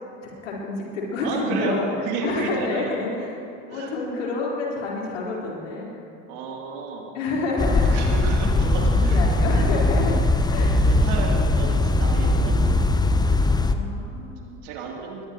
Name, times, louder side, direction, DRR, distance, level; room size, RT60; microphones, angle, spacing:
voice 1, 0.2-1.9 2.2-6.0 7.1-8.1 8.6-10.2 10.5-10.8 13.7-14.5, left 3 dB, 75° left, -4 dB, 4.6 m, -29 dB
voice 2, 1.2-2.9 3.7-3.9 6.3-7.1 7.8-9.2 9.5-9.7 10.6-13.6 14.6-15.2, right 4 dB, 60° right, -1 dB, 3.4 m, -32 dB
sound 1, 7.6-13.7, left 2 dB, 10° left, 0.9 m, -20 dB
21.5 x 20.0 x 3.1 m, 2.8 s
hypercardioid pair, 75°, 38 cm